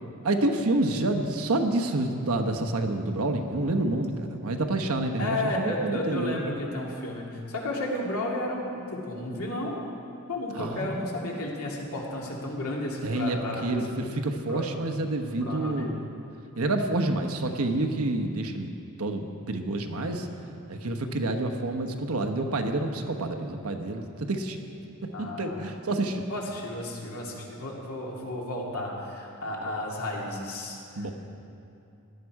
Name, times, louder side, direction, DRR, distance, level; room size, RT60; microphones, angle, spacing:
voice 1, 0.2-6.4 10.5-10.9 13.0-16.0 16.6-18.7 19.0-20.3 20.7-24.6 25.0-26.3 31.0-31.1, right 2 dB, 75° right, 5 dB, 1.0 m, -28 dB
voice 2, 5.2-9.8 10.3-13.8 14.5-14.7 15.4-15.9 25.1-25.6 26.3-31.1, left 1 dB, 80° left, -2 dB, 2.4 m, -33 dB
16.5 x 11.5 x 4.8 m, 2.7 s
head